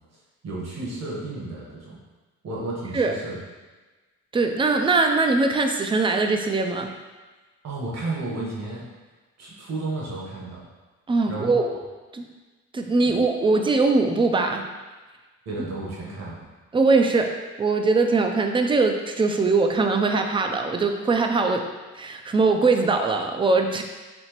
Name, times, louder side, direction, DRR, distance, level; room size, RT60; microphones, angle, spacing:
voice 1, 0.4-2.0 2.4-3.4 7.6-8.8 9.4-10.6 11.3-11.8 13.0-13.2 15.4-16.4, right 2 dB, 60° right, -4 dB, 1.3 m, -32 dB
voice 2, 4.3-6.9 11.1-11.7 12.1-12.2 12.7-14.6 16.7-17.3 17.6-21.6 21.9-23.8, right 3 dB, 15° right, 4 dB, 0.4 m, -21 dB
4.3 x 2.8 x 3.0 m, 1.3 s
cardioid pair, 90°, 30 cm